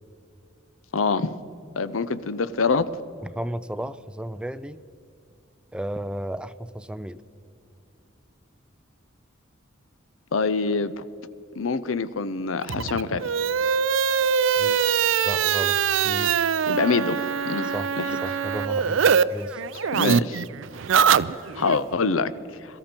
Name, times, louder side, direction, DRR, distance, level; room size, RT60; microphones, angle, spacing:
voice 1, 0.9-1.3 1.8-2.9 10.3-11.1 11.6-13.3 16.7-18.2 19.9-20.4 21.5-22.3, left 4 dB, 85° left, 14 dB, 0.7 m, -25 dB
voice 2, 3.2-4.8 5.7-7.2 14.6-14.8 15.2-15.8 16.0-16.4 17.6-19.0 19.3-19.6, right 1 dB, 5° right, 14 dB, 0.4 m, -33 dB
sound 1, 12.6-19.2 19.5-21.8, right 7 dB, 70° right, 0.5 m, -23 dB
22.5 x 13.5 x 4.4 m, 2.6 s
head